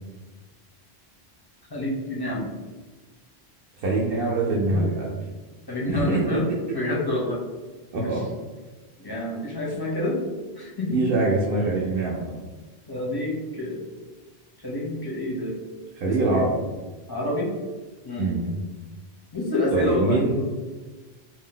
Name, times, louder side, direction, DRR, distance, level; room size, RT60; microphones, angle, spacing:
voice 1, 1.7-2.5 4.7-4.8 5.7-6.4 6.7-7.4 8.0-8.2 9.0-10.2 10.6-11.0 12.9-13.9 14.6-15.6 16.1-16.5 17.1-17.5 18.0-18.3 19.3-20.4, left 1 dB, 30° left, -4 dB, 0.5 m, -28 dB
voice 2, 3.8-5.2 5.9-6.2 7.9-8.2 10.9-12.3 16.0-16.5 18.2-18.6 19.7-20.4, right 2 dB, 65° right, -4 dB, 0.7 m, -24 dB
2.6 x 2.0 x 3.7 m, 1.3 s
omnidirectional pair, 1.1 m